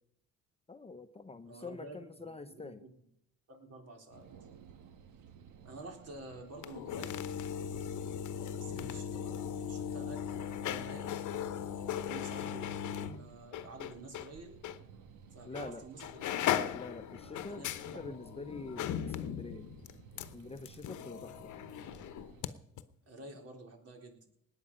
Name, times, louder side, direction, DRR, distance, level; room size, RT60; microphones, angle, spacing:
voice 1, 0.7-2.8 15.5-15.8 16.7-19.7 20.3-21.5, left 3 dB, 20° left, 8 dB, 0.8 m, -46 dB
voice 2, 1.5-2.9 3.5-4.3 5.6-7.2 8.3-9.4 9.7-11.2 11.8-14.6 15.3-16.4 17.3-18.1 18.5-18.7 23.1-24.3, right 2 dB, 55° right, 2 dB, 4.0 m, -50 dB
sound 1, 4.1-22.4, right 7 dB, 85° right, 1.3 m, -56 dB
sound 2, 6.5-14.3 14.6-14.8 15.5-15.7 16.0-22.5 22.8-22.9, left 9 dB, 75° left, 1.0 m, -38 dB
19.0 x 9.0 x 5.5 m, 0.75 s
cardioid pair, 90°, 30 cm